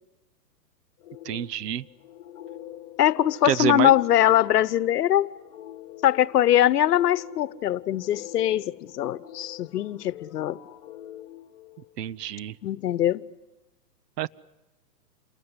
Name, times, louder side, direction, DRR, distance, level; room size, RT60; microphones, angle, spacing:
sound 1, 1.0-12.3, left 12 dB, 40° left, 1.8 m, -45 dB
voice 1, 1.2-1.8 3.4-3.9 12.0-12.5 14.2-14.3, right 11 dB, 75° right, 0.9 m, -27 dB
voice 2, 3.0-5.3 6.0-10.6 12.6-13.2, left 12 dB, 70° left, 1.1 m, -22 dB
28.5 x 20.5 x 9.8 m
hypercardioid pair, 155°, 48 cm